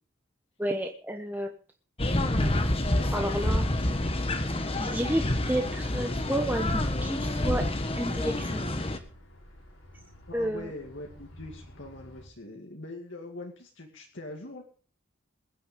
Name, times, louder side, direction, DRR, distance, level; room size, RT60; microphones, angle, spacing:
voice 1, 0.6-1.5 3.1-3.7 4.8-6.7 7.0-7.6 7.9-8.8 10.3-10.7, right 1 dB, 10° right, 3 dB, 1.1 m, -31 dB
sound 1, 2.0-9.0, left 1 dB, 25° left, 1.4 m, -28 dB
sound 2, 5.8-12.3, equal, 85° left, 5.5 m, -51 dB
voice 2, 10.3-14.6, left 2 dB, 65° left, 2 dB, 2.3 m, -42 dB
20.5 x 9.6 x 5.2 m, 0.38 s
head